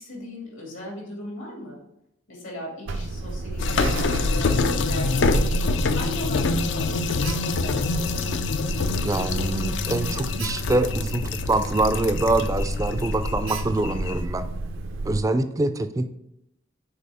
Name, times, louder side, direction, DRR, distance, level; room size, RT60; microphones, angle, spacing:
voice 1, 0.0-1.8 2.3-5.5 5.9-8.1, left 1 dB, 80° left, -2 dB, 2.6 m, -38 dB
Alarm, 2.9-15.2, right 2 dB, 75° right, 0.5 m, -31 dB
sound 1, 3.6-14.2, left 4 dB, 65° left, 0.4 m, -26 dB
voice 2, 9.0-14.5 15.1-16.1, right 2 dB, 15° right, 10 dB, 0.4 m, -25 dB
6.7 x 4.7 x 3.5 m, 0.81 s
head